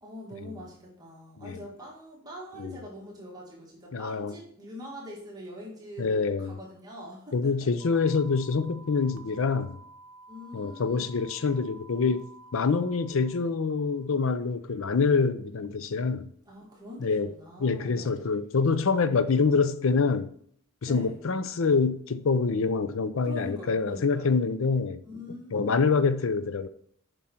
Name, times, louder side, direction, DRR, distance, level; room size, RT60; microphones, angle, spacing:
voice 1, 0.0-7.7 10.3-11.2 16.5-18.2 20.9-21.2 23.2-24.4 25.1-25.9, equal, 20° right, 1.8 m, -43 dB
voice 2, 3.9-4.3 6.0-6.6 7.3-9.8 10.5-12.2 12.5-16.3 17.0-17.3 17.6-20.3 20.8-25.0 25.5-26.7, left 4 dB, 60° left, 0.5 m, -26 dB
sound 1, 7.8-14.1, right 3 dB, 60° right, 0.8 m, -52 dB
7.3 x 5.4 x 4.4 m
head